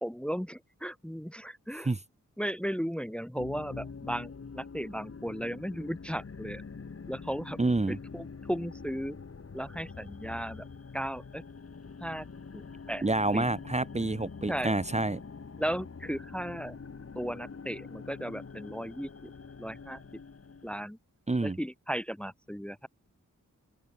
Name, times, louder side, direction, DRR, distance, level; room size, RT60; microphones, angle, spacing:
voice 1, 0.0-1.9 2.4-6.6 7.1-7.6 7.9-9.2 9.5-10.7 10.9-11.4 12.0-12.3 12.5-13.0 13.3-13.5 14.5-14.7 15.6-16.8 17.1-19.1 19.6-20.0 20.6-21.0 21.4-22.9, equal, 5° left, 1.1 m, -35 dB
ab oblivian atmos, 3.4-20.8, left 5 dB, 45° left, 2.0 m, -45 dB
voice 2, 7.6-8.0 13.0-15.2 21.3-21.6, right 2 dB, 20° right, 1.1 m, -28 dB
open air
cardioid pair, 70°, 32 cm